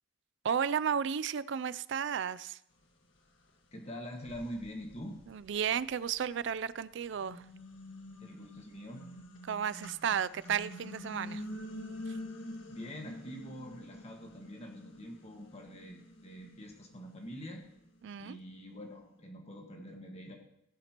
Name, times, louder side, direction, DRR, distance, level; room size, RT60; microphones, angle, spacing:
voice 1, 0.4-2.6 5.3-7.5 9.4-11.4 12.1-12.2 18.0-18.4, right 7 dB, 65° right, 0.4 m, -33 dB
sound 1, 3.5-3.6 4.2-6.5 7.0-18.3, left 1 dB, 70° left, 1.7 m, -47 dB
voice 2, 3.7-5.2 8.2-9.0 12.7-17.6 18.2-20.4, equal, 35° left, 1.6 m, -45 dB
15.0 x 11.0 x 3.0 m
head